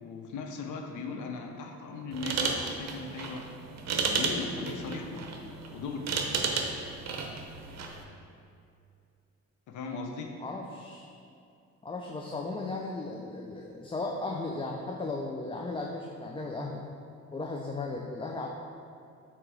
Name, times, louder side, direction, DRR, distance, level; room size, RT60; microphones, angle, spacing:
voice 1, 0.0-3.5 4.0-6.1 9.7-10.3, left 3 dB, 80° left, 3 dB, 0.8 m, -38 dB
sound 1, 2.1-8.0, right 4 dB, 60° right, 0.7 m, -33 dB
voice 2, 10.4-11.1 11.8-16.9 17.3-18.5, left 3 dB, 20° left, 0 dB, 0.5 m, -36 dB
7.7 x 3.0 x 4.7 m, 2.5 s
cardioid pair, 90°, 30 cm